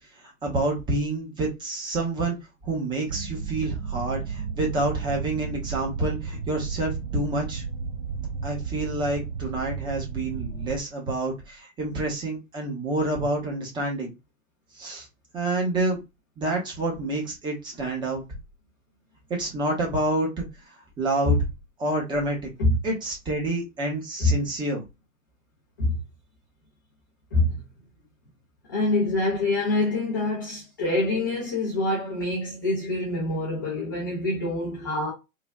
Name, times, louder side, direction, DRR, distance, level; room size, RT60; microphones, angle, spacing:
voice 1, 0.2-2.4 2.6-7.6 8.4-14.1 14.7-15.1 15.3-16.0 16.4-18.2 19.3-20.4 21.0-21.4 21.8-22.5 22.8-24.8, right 2 dB, 10° right, 0.7 m, -28 dB
sound 1, 3.1-10.8, right 6 dB, 50° right, 0.8 m, -33 dB
voice 2, 28.7-35.1, left 2 dB, 15° left, 0.3 m, -25 dB
3.3 x 2.2 x 2.3 m
figure-of-eight pair, 115°, 42 cm